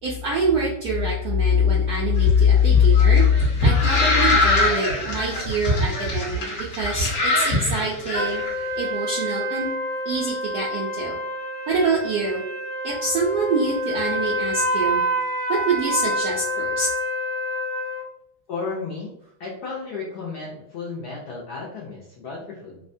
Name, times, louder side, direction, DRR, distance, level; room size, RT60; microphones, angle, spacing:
voice 1, 0.0-8.4 8.8-9.7 10.0-11.2 11.7-12.4 12.8-15.0 15.5-16.9, left 2 dB, 75° right, -5 dB, 0.8 m, -22 dB
sound 1, 2.2-8.5, left 1 dB, 55° left, 1.1 m, -23 dB
sound 2, 8.1-18.0, equal, 20° right, 0.5 m, -27 dB
voice 2, 18.5-19.1 19.4-22.8, left 4 dB, 75° left, -4 dB, 0.9 m, -33 dB
3.3 x 2.1 x 2.5 m, 0.76 s
omnidirectional pair, 2.3 m